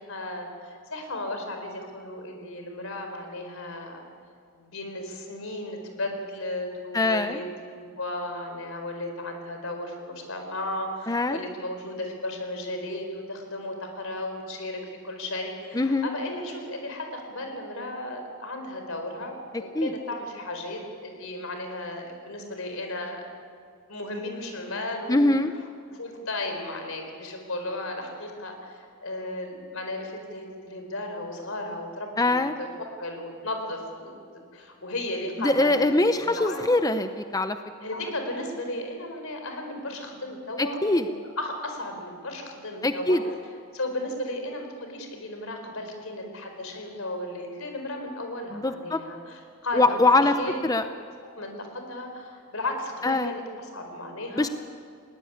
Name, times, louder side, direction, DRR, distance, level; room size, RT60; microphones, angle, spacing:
voice 1, 0.1-4.0 4.6-7.4 7.7-23.2 23.9-25.3 25.9-36.7 37.8-43.2 43.7-50.9 51.4-54.5, left 1 dB, 70° left, 4 dB, 4.6 m, -35 dB
voice 2, 6.9-7.4 11.1-11.4 15.7-16.1 19.8-19.9 25.1-25.5 32.2-32.5 35.4-37.6 40.6-41.0 42.8-43.2 48.5-49.0 49.7-50.3 50.6-50.9 53.0-53.3 54.4-54.5, left 2 dB, 15° left, 9 dB, 0.6 m, -22 dB
20.5 x 18.0 x 9.9 m, 2.3 s
head